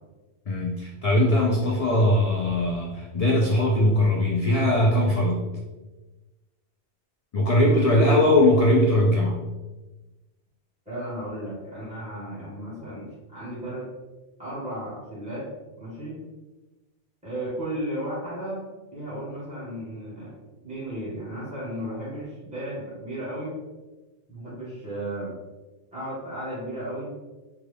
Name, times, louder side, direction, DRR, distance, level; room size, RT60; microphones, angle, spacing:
voice 1, 0.5-5.4 7.3-9.5, left 1 dB, 65° left, -1 dB, 0.3 m, -20 dB
voice 2, 7.7-8.3 10.8-13.9 14.4-15.5 15.8-16.2 17.2-18.6 18.9-20.3 20.6-23.6 24.3-25.3 25.9-27.1, right 1 dB, 5° right, -10 dB, 1.3 m, -34 dB
3.6 x 2.3 x 3.2 m, 1.1 s
omnidirectional pair, 1.2 m